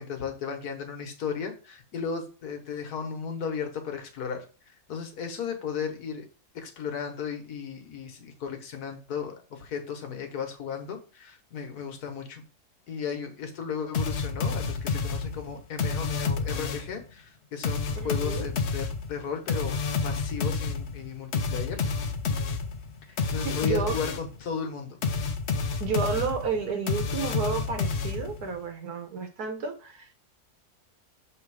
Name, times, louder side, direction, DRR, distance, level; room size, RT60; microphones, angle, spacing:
voice 1, 0.0-4.4 4.9-6.3 6.5-12.4 12.9-21.8 23.3-25.0, left 6 dB, 75° left, 1.6 m, -35 dB
sound 1, 13.9-17.0 17.6-24.4 25.0-28.5, left 4 dB, 55° left, 0.8 m, -29 dB
voice 2, 18.0-18.5 23.4-23.9 25.8-30.1, right 5 dB, 75° right, 1.6 m, -31 dB
6.5 x 3.5 x 4.7 m
omnidirectional pair, 1.7 m